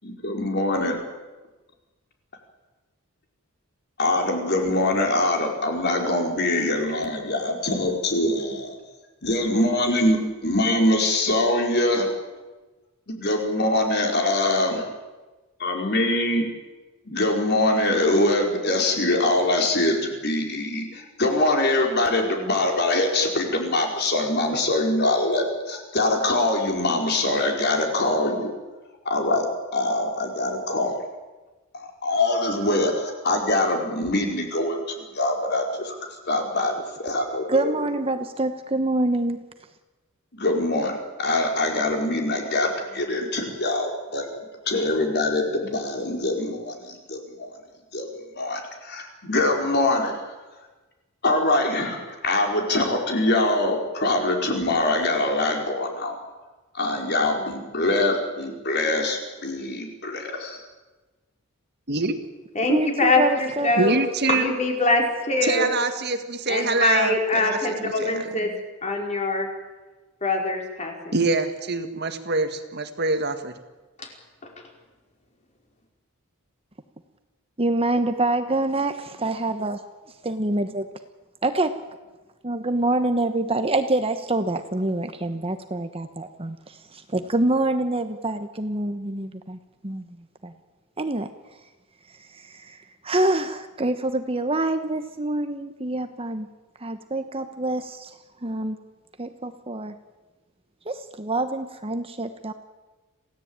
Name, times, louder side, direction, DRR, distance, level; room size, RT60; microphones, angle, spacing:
voice 1, 0.0-1.0 4.0-8.7 9.2-12.1 13.2-14.8 15.6-16.5 17.0-28.5 29.0-29.5 29.7-30.9 31.7-35.9 36.3-36.7 37.0-37.7 40.3-44.3 44.7-47.5 47.9-48.1 48.3-50.1 51.2-56.2 56.7-60.6, left 2 dB, 50° left, 2 dB, 4.9 m, -23 dB
voice 2, 37.5-39.5 62.7-64.4 77.6-79.8 80.2-80.9 81.4-81.8 82.4-89.6 89.8-90.0 90.4-90.5 91.0-91.3 92.3-92.8 93.0-96.5 96.8-98.1 98.4-98.8 99.2-99.9 100.9-102.5, right 2 dB, 25° right, 8 dB, 1.1 m, -26 dB
voice 3, 62.5-63.9 64.3-65.7 66.5-68.5 68.8-69.5 70.2-71.2 74.0-74.1 74.4-74.5, left 2 dB, 30° left, 2 dB, 4.8 m, -23 dB
voice 4, 63.8-64.6 65.4-68.5 71.1-73.5, right 3 dB, 50° right, 8 dB, 1.9 m, -25 dB
27.5 x 17.0 x 8.9 m, 1.2 s
head